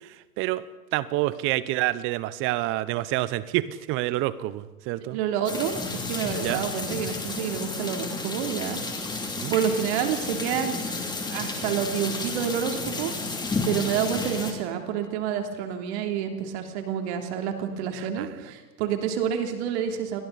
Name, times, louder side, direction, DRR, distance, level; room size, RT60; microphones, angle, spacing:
voice 1, 0.9-5.2 6.4-6.6 9.3-9.5 17.9-18.3, right 16 dB, 25° right, 17 dB, 0.9 m, -28 dB
voice 2, 5.1-5.8 6.1-8.8 9.1-9.2 9.5-10.8 11.3-13.1 13.6-20.2, right 8 dB, 45° right, 5 dB, 3.4 m, -28 dB
sound 1, 5.5-14.5, left 3 dB, 10° left, 2.9 m, -32 dB
29.5 x 22.0 x 4.2 m, 1.2 s
hypercardioid pair, 120°, 46 cm